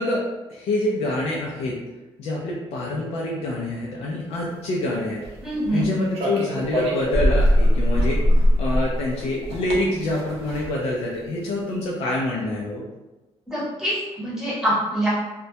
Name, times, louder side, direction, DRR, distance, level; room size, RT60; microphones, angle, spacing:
voice 1, 0.0-1.8 2.2-5.2 5.7-12.8, left 1 dB, 75° left, -3 dB, 0.4 m, -26 dB
sound 1, 5.2-5.8 6.1-10.8, equal, 70° right, 0.6 m, -21 dB
voice 2, 5.4-5.9 13.5-15.1, right 1 dB, 5° right, -8 dB, 0.9 m, -25 dB
2.2 x 2.1 x 2.6 m, 1.1 s
cardioid pair, 145°, 11 cm